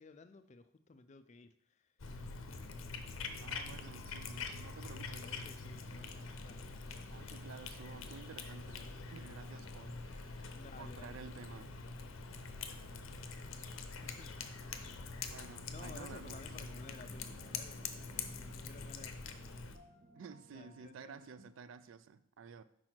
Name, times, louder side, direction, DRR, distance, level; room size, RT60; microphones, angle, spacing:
voice 1, 0.0-1.9 2.6-3.2 4.9-6.9 10.5-11.1 13.1-13.2 14.0-14.3 15.7-19.1 20.5-21.2, left 3 dB, 35° left, 0.3 m, -56 dB
Cat, 2.0-19.8, left 4 dB, 70° left, 0.6 m, -45 dB
voice 2, 3.4-5.4 7.1-10.5 10.8-11.7 15.3-16.5 20.1-22.6, right 6 dB, 65° right, 0.3 m, -52 dB
sound 1, 14.7-21.5, right 1 dB, 45° right, 0.7 m, -60 dB
6.0 x 4.8 x 4.4 m
head